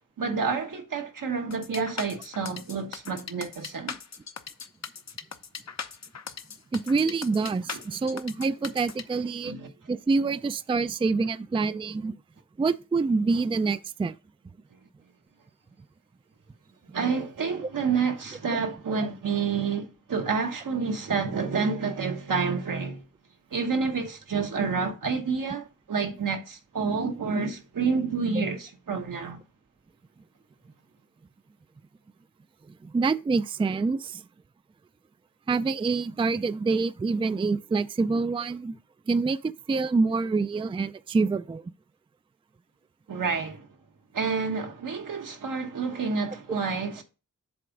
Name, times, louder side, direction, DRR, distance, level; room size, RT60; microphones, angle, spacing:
voice 1, 0.2-4.0 7.7-7.8 9.4-9.7 16.9-23.0 23.5-29.4 43.1-43.7 44.1-47.0, right 5 dB, 80° right, 1.2 m, -29 dB
sound 1, 1.5-9.0, left 6 dB, 55° left, 0.7 m, -39 dB
voice 2, 6.7-9.6 9.9-12.1 12.6-14.1 32.8-34.2 35.5-38.8 39.1-41.7, right 4 dB, 15° right, 0.3 m, -26 dB
7.7 x 3.4 x 5.1 m
cardioid pair, 50°, 32 cm